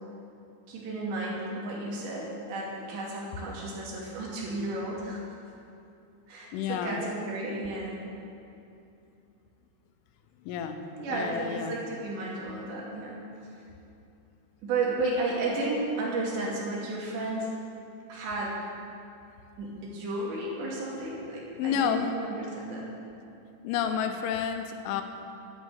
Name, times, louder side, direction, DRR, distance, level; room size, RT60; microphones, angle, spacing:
voice 1, 0.7-5.2 6.3-8.0 11.0-13.3 14.6-17.6 18.1-18.6 19.6-22.9, right 2 dB, 65° right, -4 dB, 4.5 m, -33 dB
voice 2, 6.5-7.0 10.4-10.8 11.1-11.8 21.6-22.1 23.6-25.0, left 8 dB, 85° left, 7 dB, 3.4 m, -30 dB
12.0 x 9.8 x 8.2 m, 2.7 s
omnidirectional pair, 5.5 m